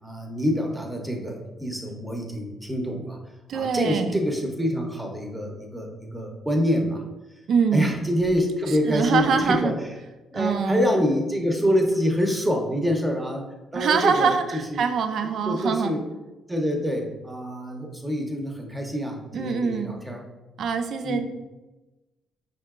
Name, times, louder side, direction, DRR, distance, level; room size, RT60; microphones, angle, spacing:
voice 1, 0.0-3.2 3.5-7.0 7.7-9.9 10.3-13.4 13.7-14.8 15.5-16.0 16.5-20.2 21.0-21.2, equal, 10° right, 2 dB, 0.7 m, -26 dB
voice 2, 3.5-4.2 7.5-7.9 8.9-9.7 10.3-10.9 13.7-15.9 19.3-19.9 20.6-21.2, right 6 dB, 65° right, 7 dB, 0.3 m, -24 dB
4.5 x 2.7 x 2.4 m, 1.1 s
cardioid pair, 90°, 0 cm